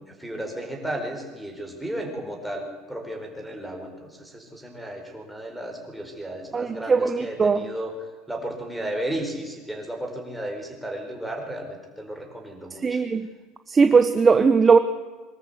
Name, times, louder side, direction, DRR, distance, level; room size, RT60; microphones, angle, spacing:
voice 1, 0.0-7.9 8.3-13.0, right 1 dB, ahead, 0 dB, 4.9 m, -34 dB
voice 2, 6.5-7.6 12.8-13.3 13.7-14.8, right 5 dB, 20° right, 9 dB, 0.9 m, -19 dB
24.0 x 13.0 x 8.3 m, 1.4 s
cardioid pair, 130°, 0 cm